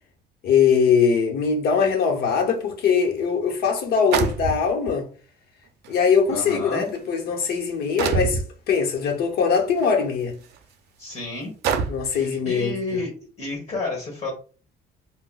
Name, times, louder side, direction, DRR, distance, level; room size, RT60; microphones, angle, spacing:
voice 1, 0.4-5.1 5.9-10.4 11.9-13.0, left 6 dB, 70° left, 0.9 m, -21 dB
sound 1, 3.0-3.1 4.1-4.9 5.8-5.9 6.7-7.0 8.0-8.5 9.8-9.9 10.5-10.6 11.6-12.2, right 6 dB, 80° right, 0.5 m, -25 dB
voice 2, 6.3-6.9 11.0-11.5 12.1-13.1 13.4-14.3, left 3 dB, 40° left, 1.3 m, -30 dB
3.7 x 2.1 x 2.3 m
cardioid pair, 110°, 17 cm